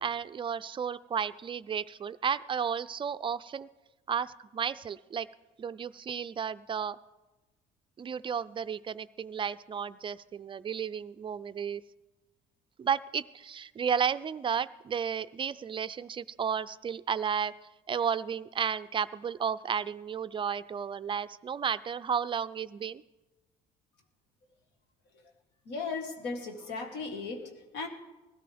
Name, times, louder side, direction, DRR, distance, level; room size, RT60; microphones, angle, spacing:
voice 1, 0.0-3.7 4.1-5.3 5.6-7.0 8.0-11.8 12.8-17.5 17.9-23.0, right 7 dB, 30° right, 14 dB, 0.4 m, -33 dB
voice 2, 25.6-27.9, left 4 dB, 85° left, 3 dB, 1.7 m, -37 dB
19.5 x 13.5 x 3.5 m, 1.1 s
cardioid pair, 110°, 17 cm